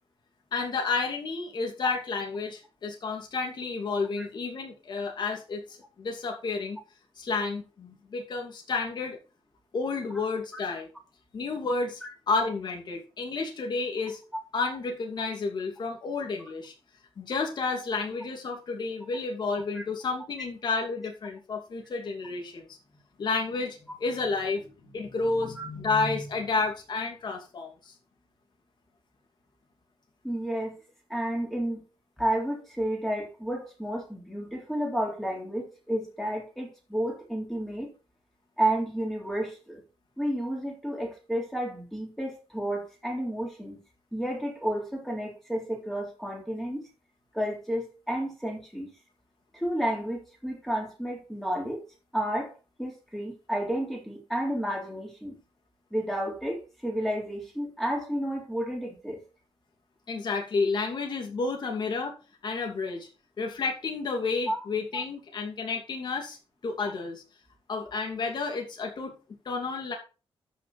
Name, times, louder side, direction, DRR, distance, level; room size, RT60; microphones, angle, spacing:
voice 1, 0.5-6.8 7.2-9.2 9.7-10.9 11.3-12.0 12.3-14.2 14.5-16.7 17.2-22.8 23.2-27.9 60.1-62.1 62.4-63.1 63.4-66.4 66.6-67.2 67.7-69.1 69.4-69.9, left 4 dB, 45° left, 2.6 m, -31 dB
voice 2, 30.2-30.8 31.1-31.8 32.2-37.9 38.6-39.8 40.2-43.8 44.1-46.8 47.3-48.9 49.5-51.8 52.1-52.5 52.8-55.4 55.9-59.2 64.5-64.6 64.9-65.0, right 1 dB, ahead, 3.6 m, -31 dB
12.5 x 6.1 x 4.3 m
wide cardioid pair, 170°, 10 cm